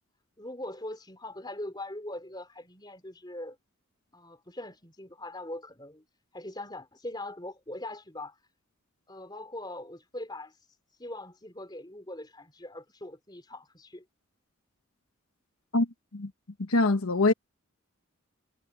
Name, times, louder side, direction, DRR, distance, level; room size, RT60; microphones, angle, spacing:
voice 1, 0.4-3.6 4.1-6.0 6.3-8.4 9.1-10.6 11.0-14.1, left 1 dB, 20° left, 3.5 m, -41 dB
voice 2, 16.7-17.3, left 2 dB, 85° left, 1.2 m, -23 dB
head